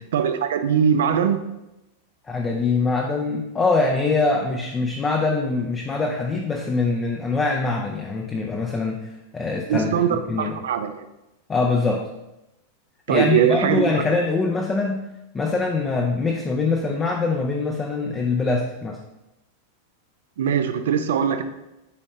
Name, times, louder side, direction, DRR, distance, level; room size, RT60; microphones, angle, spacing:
voice 1, 0.0-1.4 9.7-10.9 13.1-14.0 20.4-21.4, right 8 dB, 60° right, 10 dB, 0.5 m, -21 dB
voice 2, 2.3-10.5 11.5-12.1 13.1-15.1 15.3-19.0, left 3 dB, 20° left, 1 dB, 0.6 m, -23 dB
8.3 x 5.2 x 2.8 m, 0.94 s
figure-of-eight pair, 90°, 0 cm